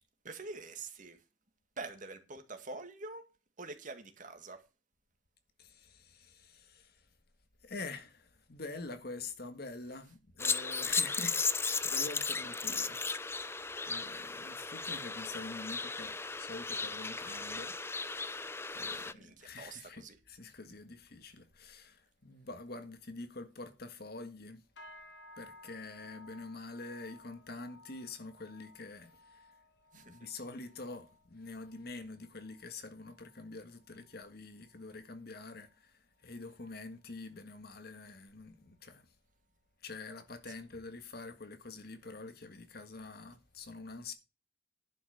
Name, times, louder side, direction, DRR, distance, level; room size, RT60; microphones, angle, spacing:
voice 1, 0.2-1.2 1.8-3.3 3.6-4.6 18.9-20.2 29.9-30.2, right 3 dB, 45° right, 1.9 m, -46 dB
voice 2, 5.6-7.1 7.6-13.5 13.8-24.6 25.4-29.6 29.9-39.1 39.8-44.1, left 3 dB, 60° left, 1.6 m, -46 dB
sound 1, 10.4-19.1, left 4 dB, 15° left, 0.5 m, -35 dB
sound 2, 24.8-34.3 34.6-35.0 35.4-35.8 36.3-36.4, left 2 dB, 75° left, 2.6 m, -59 dB
11.0 x 5.8 x 6.8 m
head